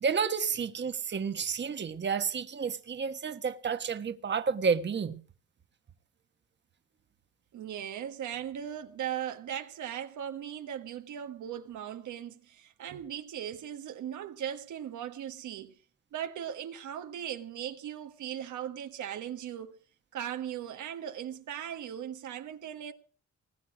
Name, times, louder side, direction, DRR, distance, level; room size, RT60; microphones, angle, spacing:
voice 1, 0.0-5.2, right 6 dB, 35° right, 1.3 m, -30 dB
voice 2, 7.5-15.8 16.1-19.8 20.1-22.9, right 10 dB, 75° right, 1.5 m, -38 dB
19.5 x 8.4 x 6.1 m
cardioid pair, 90°, 30 cm